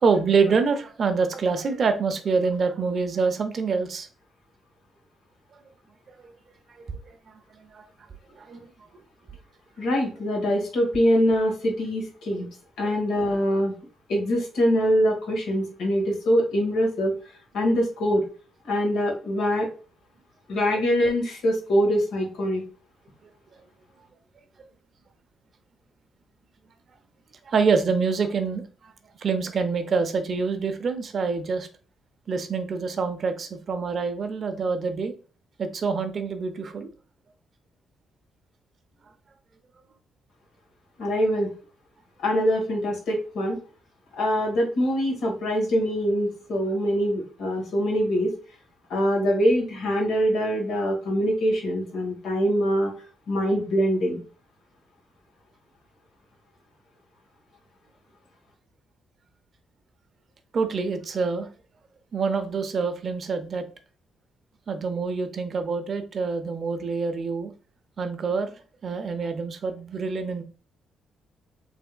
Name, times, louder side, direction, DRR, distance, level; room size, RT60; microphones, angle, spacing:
voice 1, 0.0-4.1 6.2-6.3 6.8-7.2 7.7-7.9 8.4-8.7 12.8-12.9 27.5-28.9 29.2-31.7 32.3-35.1 35.6-36.9 60.5-61.5 62.1-63.7 64.7-67.5 68.0-68.5 68.8-70.4, right 5 dB, 55° right, 8 dB, 0.6 m, -26 dB
voice 2, 9.8-12.5 12.8-13.7 14.1-17.1 17.5-18.2 18.6-19.7 20.5-22.6 41.0-41.5 42.2-43.6 44.2-48.3 48.9-52.9 53.3-54.2, equal, 75° left, 0 dB, 1.5 m, -23 dB
3.4 x 3.3 x 2.3 m, 0.38 s
hypercardioid pair, 50°, 0 cm